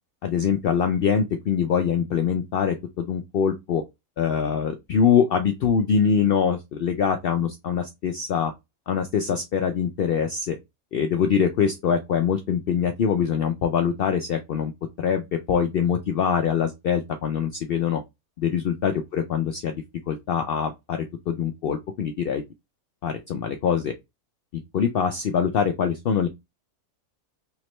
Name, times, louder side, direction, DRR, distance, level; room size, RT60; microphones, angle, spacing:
voice 1, 0.2-3.8 4.2-8.5 8.9-10.6 10.9-14.7 15.0-18.0 18.4-19.7 20.1-21.0 21.3-22.4 23.0-23.9 24.7-26.3, left 7 dB, 80° left, 0.5 m, -24 dB
3.5 x 3.0 x 3.1 m
omnidirectional pair, 1.5 m